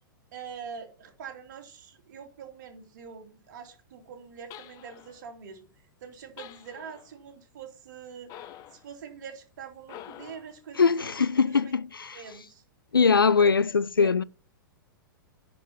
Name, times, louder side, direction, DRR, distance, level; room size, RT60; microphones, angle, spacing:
voice 1, 0.3-5.7 6.0-11.1 11.5-11.7 12.1-12.6 13.4-13.5 14.0-14.1, right 7 dB, 55° right, 2.7 m, -44 dB
sound 1, 4.5-5.2 6.4-7.1 8.3-8.9 9.8-10.6, left 12 dB, 35° left, 0.9 m, -47 dB
voice 2, 10.8-12.2 12.9-14.2, left 5 dB, 85° left, 0.4 m, -22 dB
10.0 x 5.3 x 5.5 m
figure-of-eight pair, 100°, 11 cm